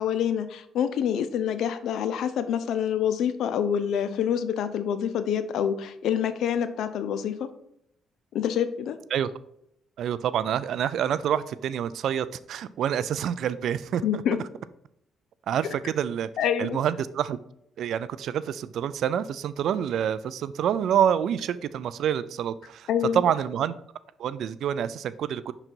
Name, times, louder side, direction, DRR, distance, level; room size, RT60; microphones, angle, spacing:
voice 1, 0.0-7.5 8.3-9.0 14.0-14.4 16.4-16.8 22.9-23.2, left 8 dB, 75° left, 11 dB, 0.5 m, -26 dB
voice 2, 10.0-14.2 15.5-16.3 16.6-17.4 17.8-23.7 24.2-25.5, right 9 dB, 70° right, 16 dB, 0.3 m, -27 dB
5.8 x 3.9 x 4.4 m, 0.74 s
cardioid pair, 90°, 0 cm